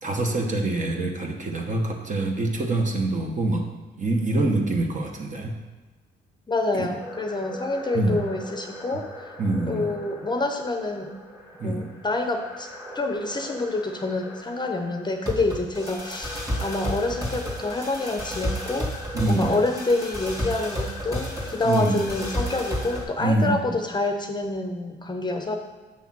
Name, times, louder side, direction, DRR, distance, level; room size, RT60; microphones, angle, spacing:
voice 1, 0.0-3.7 4.0-5.5 6.7-6.9 7.9-8.2 9.4-9.9 11.6-11.9 19.1-19.6 21.6-22.0 23.2-23.6, right 2 dB, 40° right, 2 dB, 1.1 m, -25 dB
voice 2, 6.5-9.3 9.7-11.1 11.6-12.7 12.9-18.9 19.3-25.6, left 2 dB, 20° left, 4 dB, 0.7 m, -27 dB
sound 1, 7.0-23.0, equal, 15° right, 2.1 m, -34 dB
7.4 x 3.5 x 6.0 m, 1.3 s
cardioid pair, 90°, 20 cm